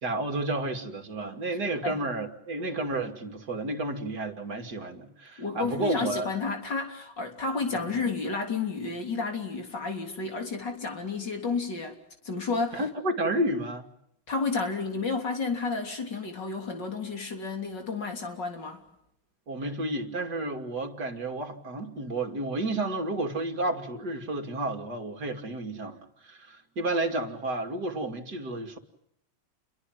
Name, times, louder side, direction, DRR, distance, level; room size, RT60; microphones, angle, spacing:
voice 1, 0.0-6.3 7.9-8.0 12.7-13.9 19.5-28.8, right 2 dB, 55° right, 5 dB, 3.1 m, -31 dB
voice 2, 5.4-12.0 12.2-12.8 14.3-18.8, left 4 dB, 65° left, 4 dB, 4.1 m, -31 dB
30.0 x 23.0 x 7.7 m, 0.79 s
omnidirectional pair, 2.1 m